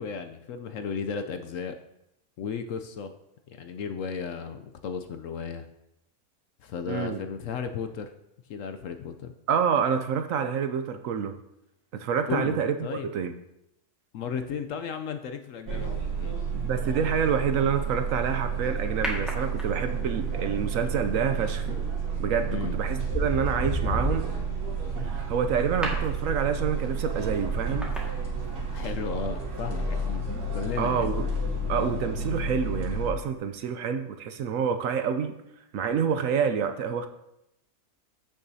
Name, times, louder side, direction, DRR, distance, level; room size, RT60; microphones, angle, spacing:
voice 1, 0.0-1.7 2.4-3.1 3.5-5.6 6.6-8.1 8.5-9.3 12.3-13.1 14.1-16.4 22.5-22.8 28.7-31.1, left 6 dB, 70° left, 7 dB, 0.8 m, -34 dB
voice 2, 6.9-7.2 9.5-11.3 11.9-12.7 13.1-13.3 16.6-21.7 22.2-24.3 25.0-27.9 30.8-31.3 31.7-35.4 35.7-37.1, right 7 dB, 65° right, 8 dB, 0.9 m, -27 dB
sound 1, 15.7-33.1, right 4 dB, 90° right, 2.1 m, -31 dB
sound 2, 19.0-20.1 21.9-22.2 22.7-28.9 29.2-29.3, equal, ahead, 1.6 m, -34 dB
14.5 x 6.2 x 2.7 m, 0.84 s
omnidirectional pair, 1.6 m